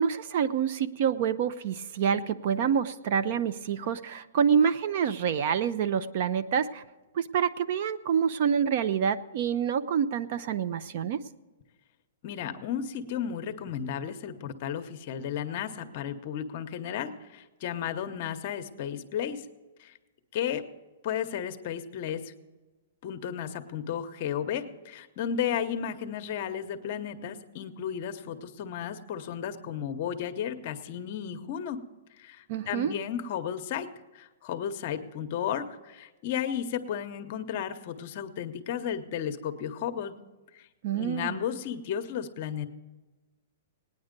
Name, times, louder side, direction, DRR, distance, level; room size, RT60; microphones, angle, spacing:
voice 1, 0.0-6.8 7.1-11.2 32.5-32.9 40.8-41.4, right 7 dB, 45° right, 13 dB, 0.5 m, -27 dB
voice 2, 12.2-19.4 19.8-19.9 20.3-20.6 21.0-22.3 23.0-31.8 32.2-33.9 34.1-40.2 40.5-40.7 41.0-42.7, left 9 dB, 40° left, 9 dB, 0.8 m, -33 dB
18.0 x 9.7 x 5.2 m, 1.2 s
hypercardioid pair, 165°, 0 cm